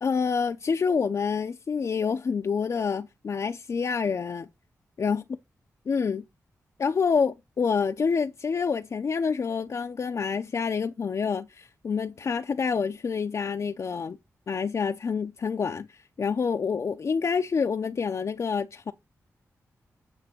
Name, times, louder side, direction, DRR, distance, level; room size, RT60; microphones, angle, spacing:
voice 1, 0.0-4.5 5.0-5.2 5.9-6.2 6.8-14.2 14.5-18.9, left 5 dB, 55° left, 0.6 m, -27 dB
8.8 x 3.3 x 6.0 m
cardioid pair, 80°, 6 cm